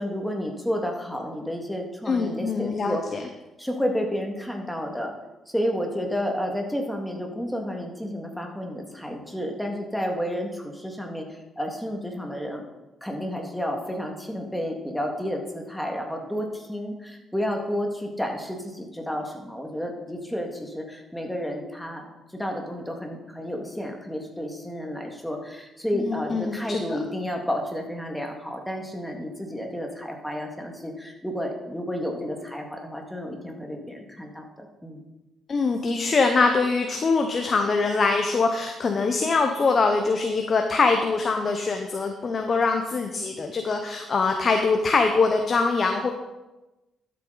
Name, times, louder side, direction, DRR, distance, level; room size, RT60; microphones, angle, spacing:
voice 1, 0.0-3.0 3.6-5.1 5.5-12.7 13.0-22.1 22.3-35.0, equal, 5° left, 2 dB, 2.1 m, -31 dB
voice 2, 2.0-3.2 25.9-27.0 35.5-46.1, left 4 dB, 40° left, 4 dB, 0.9 m, -23 dB
12.5 x 7.8 x 4.1 m, 1.0 s
cardioid pair, 90°, 0 cm